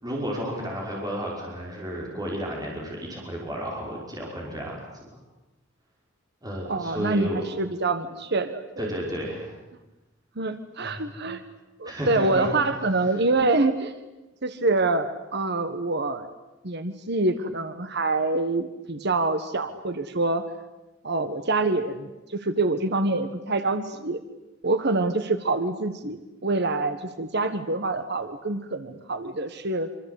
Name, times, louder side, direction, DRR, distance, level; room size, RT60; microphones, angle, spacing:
voice 1, 0.0-4.8 6.4-7.4 8.8-9.5 10.8-11.0 11.9-12.5, equal, 20° right, -2 dB, 5.6 m, -32 dB
voice 2, 6.6-8.9 10.3-11.4 11.8-13.9 14.4-16.3 16.6-20.5 21.0-24.2 24.6-29.9, right 2 dB, 60° right, 10 dB, 1.5 m, -26 dB
26.0 x 26.0 x 8.4 m, 1.0 s
head